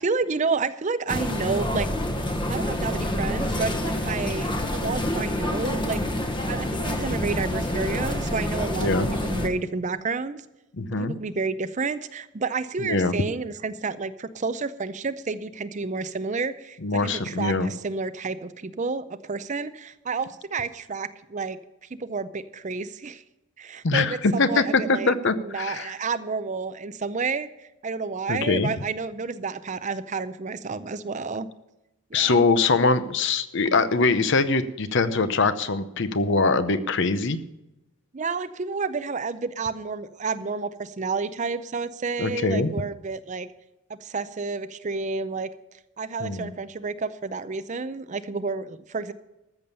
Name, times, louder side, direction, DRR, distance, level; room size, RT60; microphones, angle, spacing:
voice 1, 0.0-1.9 2.5-6.0 6.5-10.4 10.9-21.6 21.9-23.2 23.6-25.1 25.4-31.5 32.1-32.4 38.1-43.5 43.9-45.5 46.0-49.1, right 4 dB, 35° right, 14 dB, 0.5 m, -30 dB
sound 1, 1.1-9.5, left 1 dB, 20° left, 1.1 m, -27 dB
voice 2, 8.8-9.1 10.8-11.1 12.8-13.1 16.8-17.7 23.8-25.9 28.3-28.7 32.1-37.4 42.2-42.7 46.2-46.5, left 3 dB, 55° left, 12 dB, 0.8 m, -23 dB
14.0 x 7.1 x 6.8 m, 0.96 s
head